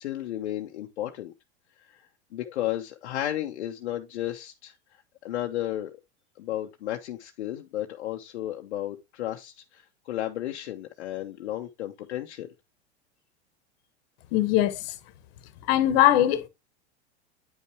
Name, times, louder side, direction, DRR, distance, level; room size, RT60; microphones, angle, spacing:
voice 1, 0.0-1.3 1.8-2.0 2.3-5.9 6.4-12.5, left 13 dB, 75° left, 0.9 m, -33 dB
voice 2, 14.3-14.9 15.7-16.5, left 13 dB, 60° left, 1.3 m, -21 dB
9.4 x 5.5 x 3.0 m
hypercardioid pair, 100°, 34 cm